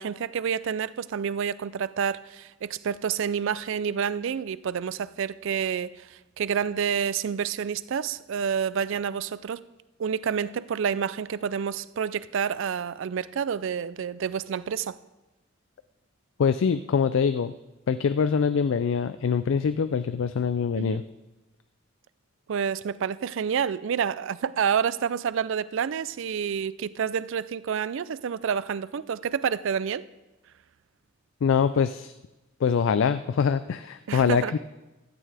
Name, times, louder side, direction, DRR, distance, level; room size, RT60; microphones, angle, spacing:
voice 1, 0.0-9.6 10.0-14.9 20.8-21.0 22.5-30.1 34.1-34.5, right 7 dB, 65° right, 0.4 m, -29 dB
voice 2, 16.4-17.5 17.9-21.0 31.4-32.1 32.6-34.6, left 6 dB, 65° left, 0.4 m, -24 dB
15.5 x 12.5 x 3.4 m
head